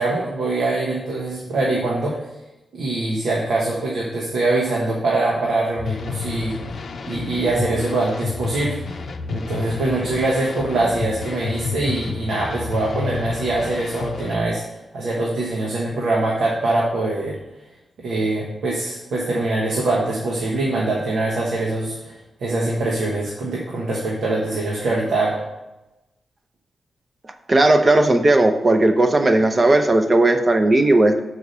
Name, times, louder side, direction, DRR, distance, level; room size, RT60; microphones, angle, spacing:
voice 1, 0.0-2.2 2.7-6.5 7.1-8.8 9.3-17.4 18.0-25.4, right 2 dB, 90° right, -3 dB, 1.3 m, -23 dB
sound 1, 5.8-14.4, left 5 dB, 55° left, 0.6 m, -30 dB
voice 2, 27.5-31.2, right 2 dB, 30° right, 7 dB, 0.7 m, -16 dB
6.5 x 4.8 x 5.5 m, 1.0 s
wide cardioid pair, 110°, 0 cm